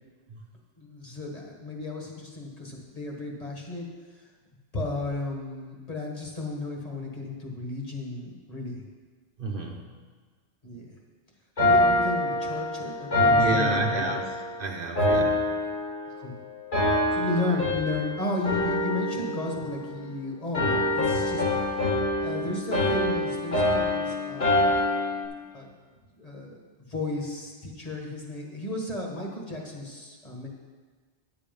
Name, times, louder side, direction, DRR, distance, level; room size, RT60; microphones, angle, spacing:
voice 1, 0.8-3.9 4.1-4.3 4.7-8.8 10.6-10.9 11.6-14.1 16.1-16.3 17.1-21.4 21.7-21.8 22.2-24.7 25.5-25.7 26.2-26.6 26.9-30.5, left 2 dB, 35° left, -1 dB, 1.7 m, -34 dB
voice 2, 9.4-9.8 13.2-14.3 14.6-15.5 17.1-17.2, right 3 dB, 55° right, 2 dB, 1.0 m, -30 dB
sound 1, 11.6-14.5 15.0-16.3 16.7-18.1 18.4-20.2 20.5-25.3, left 1 dB, 65° left, 2.5 m, -25 dB
10.0 x 7.7 x 5.3 m, 1.4 s
omnidirectional pair, 1.1 m